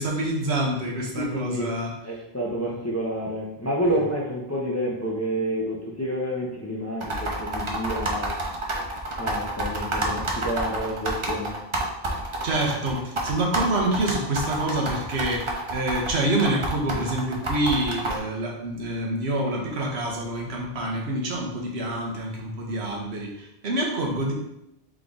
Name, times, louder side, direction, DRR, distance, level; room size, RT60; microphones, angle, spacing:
voice 1, 0.0-2.1 2.6-2.8 3.8-4.0 12.4-24.3, right 1 dB, 80° right, -1 dB, 1.2 m, -27 dB
voice 2, 1.1-1.7 2.0-8.3 9.2-11.6, equal, 20° left, -3 dB, 0.5 m, -29 dB
sound 1, 7.0-18.2, right 2 dB, 35° right, 0.7 m, -29 dB
3.8 x 3.6 x 3.8 m, 0.84 s
omnidirectional pair, 1.1 m